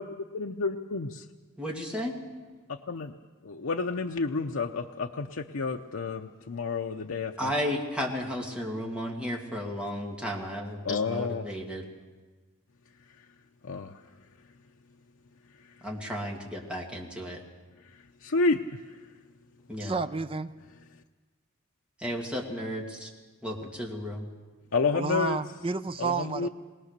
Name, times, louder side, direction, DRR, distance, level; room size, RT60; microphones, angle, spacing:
voice 1, 0.3-1.2 2.7-3.1 3.4-7.5 10.8-11.4 13.6-13.9 18.2-18.6 24.7-25.4 26.0-26.5, left 4 dB, 80° left, 0.7 m, -30 dB
voice 2, 1.6-2.2 7.4-11.9 15.8-17.4 19.7-20.0 22.0-23.1 23.4-24.3, equal, 5° right, 2.3 m, -33 dB
voice 3, 19.8-20.5 24.9-26.5, right 4 dB, 25° right, 0.6 m, -30 dB
21.5 x 19.0 x 6.7 m
head